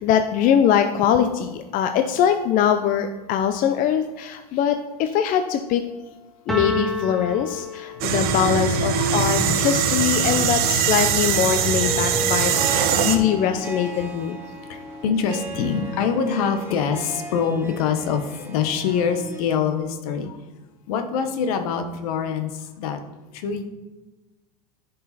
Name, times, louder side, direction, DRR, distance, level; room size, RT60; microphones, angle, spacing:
voice 1, 0.0-5.8 6.5-14.4, left 8 dB, 45° left, 7 dB, 0.6 m, -22 dB
sound 1, 6.5-8.4, left 2 dB, ahead, 1.4 m, -28 dB
sound 2, 8.0-13.2, right 8 dB, 50° right, 1.0 m, -22 dB
voice 2, 8.1-11.0 11.6-12.3 12.9-13.3 14.5-20.4 20.9-23.0 23.3-23.6, left 6 dB, 75° left, 7 dB, 1.2 m, -26 dB
Harp, 11.5-19.5, right 1 dB, 15° right, 2.6 m, -35 dB
10.5 x 5.4 x 4.1 m, 1.2 s
hypercardioid pair, 100°, 19 cm